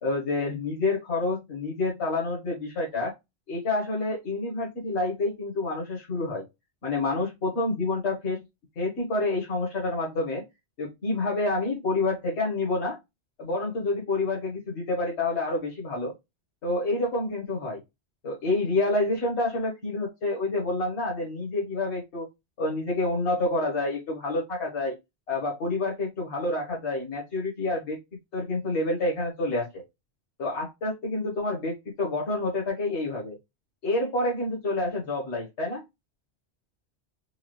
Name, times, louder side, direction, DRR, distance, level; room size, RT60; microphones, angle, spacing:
voice 1, 0.0-3.1 3.5-6.4 6.8-8.4 8.8-10.4 10.8-13.0 13.4-16.1 16.6-17.8 18.2-22.3 22.6-25.0 25.3-28.0 28.3-29.8 30.4-33.4 33.8-35.8, left 2 dB, 75° left, -3 dB, 1.5 m, -28 dB
4.7 x 2.3 x 3.1 m, 0.20 s
omnidirectional pair, 1.1 m